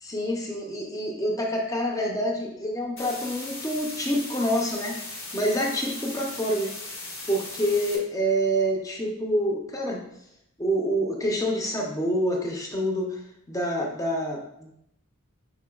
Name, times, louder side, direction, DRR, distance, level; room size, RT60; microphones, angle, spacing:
voice 1, 0.0-6.7 7.3-10.0 10.6-13.2 13.5-14.7, equal, 15° left, 0 dB, 0.5 m, -27 dB
sound 1, 3.0-8.0, left 2 dB, 60° left, 1.0 m, -38 dB
5.3 x 3.7 x 2.3 m, 0.78 s
head